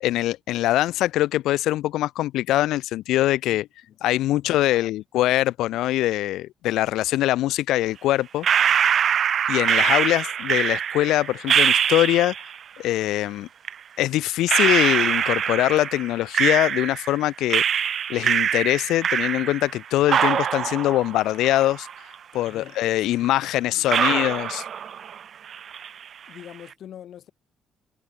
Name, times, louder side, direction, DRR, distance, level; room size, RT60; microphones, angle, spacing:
voice 1, 0.0-3.7 4.0-8.5 9.5-12.3 12.8-13.5 14.0-17.6 18.1-21.9 22.3-24.6, left 15 dB, 90° left, 0.5 m, -23 dB
voice 2, 4.4-4.8 22.5-23.3 23.6-24.3 26.3-27.3, left 10 dB, 70° left, 4.1 m, -45 dB
sound 1, 8.4-12.6 13.6-13.7 14.5-17.2 17.5-19.8 20.1-22.1 22.5-22.6 23.2-23.3 23.9-25.2 25.5-26.0, right 8 dB, 60° right, 1.2 m, -23 dB
cardioid pair, 90°, 0 cm